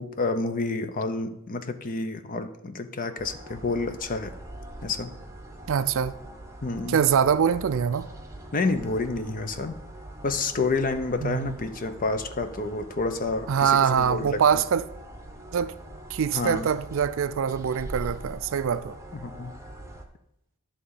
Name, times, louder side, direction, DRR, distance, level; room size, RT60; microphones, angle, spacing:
voice 1, 0.0-4.3 4.8-5.1 6.6-7.0 8.5-9.8 10.2-14.4 16.3-16.7 19.1-19.6, left 3 dB, 40° left, 0.6 m, -29 dB
sound 1, 3.2-20.0, right 1 dB, 15° right, 0.8 m, -43 dB
voice 2, 5.7-6.1 6.9-8.1 11.2-11.6 13.5-14.8 15.5-15.7 16.1-19.0, right 7 dB, 60° right, 0.4 m, -24 dB
11.0 x 3.8 x 6.9 m
head